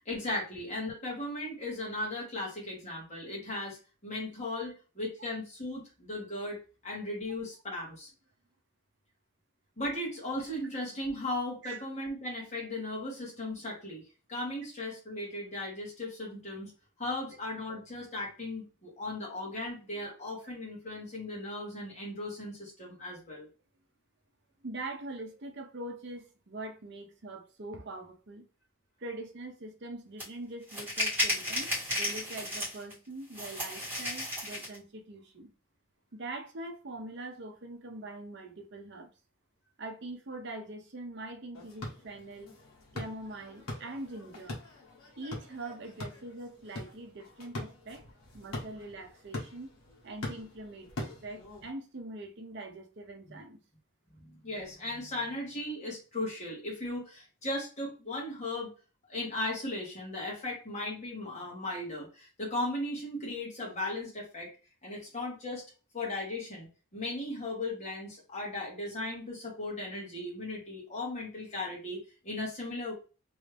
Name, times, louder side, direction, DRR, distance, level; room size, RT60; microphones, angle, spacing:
voice 1, 0.0-6.6 6.8-8.1 9.8-14.0 14.3-16.7 17.0-23.5 54.2-58.7 59.1-64.5 64.8-65.6 65.9-72.9, left 1 dB, 35° left, 1.5 m, -37 dB
voice 2, 24.6-28.4 29.0-35.5 36.1-39.1 39.8-42.5 42.9-44.6 45.2-48.0 48.3-49.7 50.0-53.6, right 2 dB, 55° right, 0.7 m, -43 dB
sound 1, 30.2-30.3 30.7-32.9 33.3-34.8, left 1 dB, 10° right, 1.4 m, -33 dB
sound 2, 41.5-51.7, left 2 dB, 80° left, 1.4 m, -43 dB
3.1 x 2.7 x 3.3 m
head